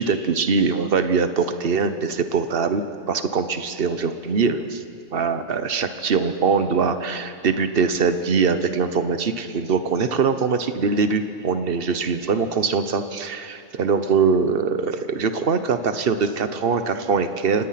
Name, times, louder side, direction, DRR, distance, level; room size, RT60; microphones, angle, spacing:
voice 1, 0.0-4.8 5.1-17.7, right 5 dB, 45° right, 10 dB, 1.2 m, -22 dB
25.0 x 19.5 x 5.9 m, 2.5 s
omnidirectional pair, 1.4 m